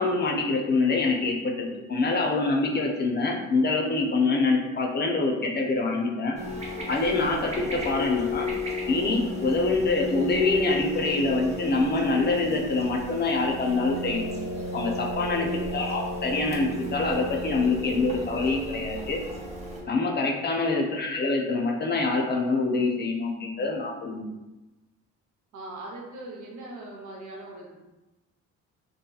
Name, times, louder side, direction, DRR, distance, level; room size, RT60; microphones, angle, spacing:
voice 1, 0.0-6.4 6.9-8.5 8.9-14.3 14.7-15.5 15.7-19.2 19.9-24.2, left 3 dB, 35° left, 1 dB, 0.5 m, -25 dB
sound 1, 6.4-19.8, left 1 dB, 20° right, 0.7 m, -33 dB
voice 2, 15.3-15.7 20.5-20.9 25.5-27.7, right 2 dB, 70° right, -2 dB, 0.7 m, -41 dB
2.8 x 2.6 x 2.3 m, 1.1 s
cardioid pair, 90°, 30 cm